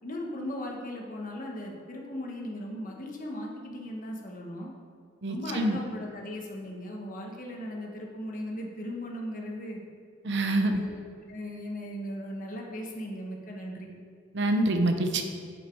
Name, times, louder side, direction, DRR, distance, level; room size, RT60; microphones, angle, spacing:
voice 1, 0.0-4.7 5.3-9.8 10.6-11.0 11.3-14.0, left 1 dB, 45° left, 0 dB, 1.4 m, -37 dB
voice 2, 5.2-5.8 10.2-10.8 14.3-15.2, right 1 dB, 65° right, 5 dB, 0.8 m, -26 dB
8.0 x 7.5 x 4.7 m, 2.3 s
head